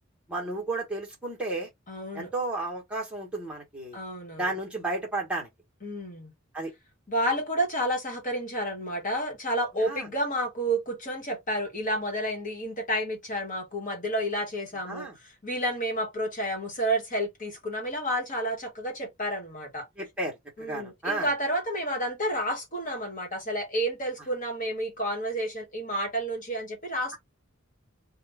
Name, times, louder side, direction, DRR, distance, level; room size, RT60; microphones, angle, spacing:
voice 1, 0.3-1.7 2.1-4.0 4.4-5.5 6.5-6.7 9.8-10.1 14.9-15.2 20.0-21.3, right 2 dB, 5° right, 1.3 m, -33 dB
voice 2, 1.9-2.3 3.9-4.5 5.8-6.3 7.1-19.9 20.6-27.2, right 1 dB, 40° left, 1.4 m, -30 dB
2.6 x 2.5 x 3.4 m
head